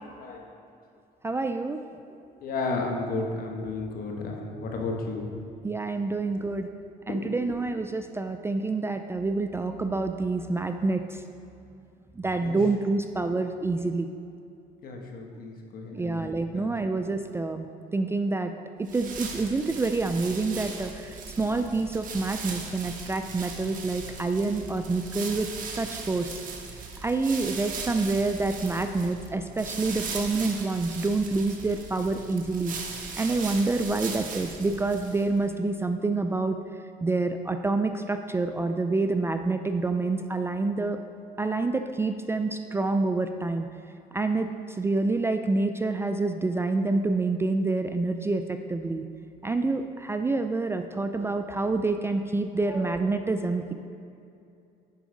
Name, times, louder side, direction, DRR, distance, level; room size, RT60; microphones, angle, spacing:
voice 1, 0.2-0.5 2.4-5.3 6.3-6.4 7.1-7.2 12.4-12.6 14.8-16.7, left 3 dB, 60° left, 1 dB, 1.3 m, -33 dB
voice 2, 1.2-1.8 5.6-6.7 7.1-11.0 12.2-14.1 15.9-17.7 17.9-18.5 18.8-25.5 25.8-26.4 27.0-32.7 33.2-36.6 37.0-41.0 41.4-43.7 44.1-44.5 44.8-49.0 49.4-53.7, right 3 dB, 15° right, 7 dB, 0.3 m, -27 dB
sound 1, 18.9-35.4, right 4 dB, 50° right, 1.2 m, -38 dB
10.0 x 4.7 x 5.2 m, 2.6 s
cardioid pair, 110°, 17 cm